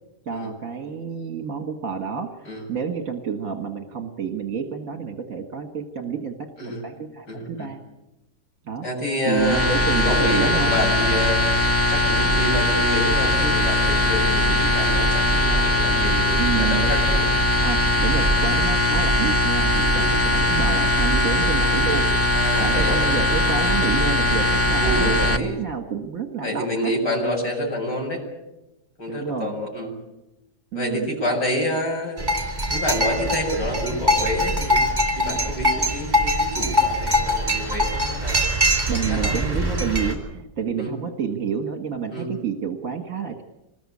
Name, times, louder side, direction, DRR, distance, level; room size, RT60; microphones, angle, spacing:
voice 1, 0.3-7.8 8.7-8.9 9.3-10.8 16.4-16.9 17.6-22.1 22.6-26.9 29.1-29.5 30.7-31.1 38.6-43.4, right 6 dB, 55° right, 5 dB, 2.1 m, -29 dB
voice 2, 7.3-7.7 8.8-9.7 10.0-11.5 11.9-17.2 20.0-20.1 22.3-23.0 24.8-25.6 26.4-28.2 29.0-29.9 30.7-32.2 32.7-34.8 35.1-38.4 39.1-39.8 40.8-40.9 42.1-42.3, left 1 dB, 90° left, -1 dB, 8.3 m, -28 dB
sound 1, 9.3-25.4, left 1 dB, 10° left, 1.2 m, -20 dB
sound 2, 32.2-40.1, equal, 15° right, 4.2 m, -23 dB
26.5 x 21.0 x 8.6 m, 0.96 s
omnidirectional pair, 1.8 m